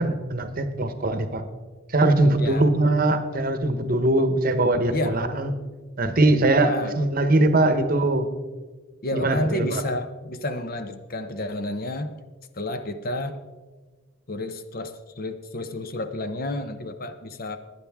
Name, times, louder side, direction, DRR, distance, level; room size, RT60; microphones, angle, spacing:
voice 1, 0.0-1.4 1.9-5.5 6.0-8.3 9.1-9.8, right 2 dB, 40° right, 9 dB, 1.0 m, -21 dB
voice 2, 2.4-2.7 4.9-5.2 6.6-6.9 9.0-12.1 12.5-13.4 14.3-17.6, left 1 dB, 40° left, 9 dB, 0.7 m, -30 dB
18.5 x 10.0 x 3.6 m, 1.4 s
head